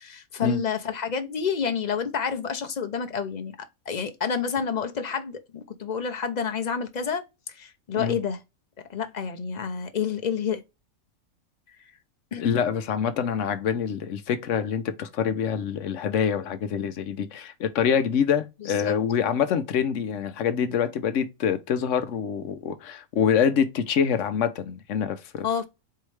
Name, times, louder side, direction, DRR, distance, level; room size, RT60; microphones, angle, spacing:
voice 1, 0.0-3.5 3.9-8.4 8.9-10.6 12.3-12.5 18.6-19.0 25.4-25.7, left 6 dB, 40° left, 0.6 m, -29 dB
voice 2, 12.4-25.5, left 7 dB, 65° left, 1.0 m, -25 dB
4.6 x 3.1 x 3.2 m
omnidirectional pair, 1.5 m